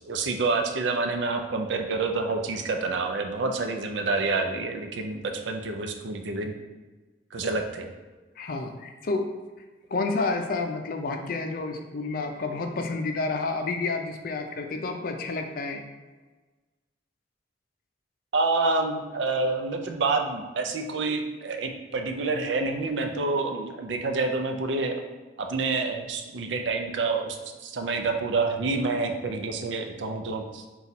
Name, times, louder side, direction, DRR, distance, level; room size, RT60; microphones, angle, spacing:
voice 1, 0.1-6.5 7.3-7.9 18.3-25.0 25.4-27.4 27.6-30.6, right 3 dB, 90° right, 5 dB, 0.5 m, -28 dB
voice 2, 8.4-9.3 9.9-15.8, left 3 dB, 55° left, 5 dB, 0.4 m, -30 dB
4.0 x 2.4 x 4.1 m, 1.3 s
head